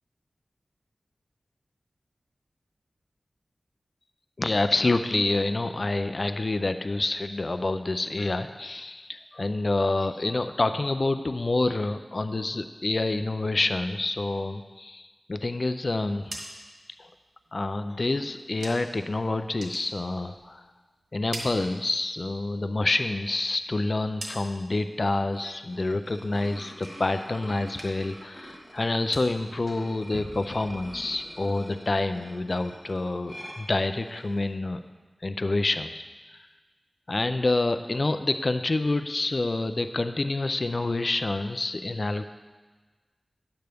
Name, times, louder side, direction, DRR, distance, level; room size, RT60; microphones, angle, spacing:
voice 1, 4.4-16.4 17.0-17.1 17.5-20.7 21.1-34.8 35.2-36.0 37.1-42.2, left 2 dB, 50° left, 10 dB, 0.3 m, -27 dB
sound 1, 16.0-19.1 19.4-20.7 21.0-22.3 22.7-24.8 25.2-25.7 26.0-27.3 27.6-28.2 28.5-31.3, right 1 dB, 90° right, 1.4 m, -44 dB
sound 2, 25.1-34.4, equal, 10° right, 1.6 m, -46 dB
10.5 x 7.8 x 3.4 m, 1.4 s
wide cardioid pair, 65°, 0 cm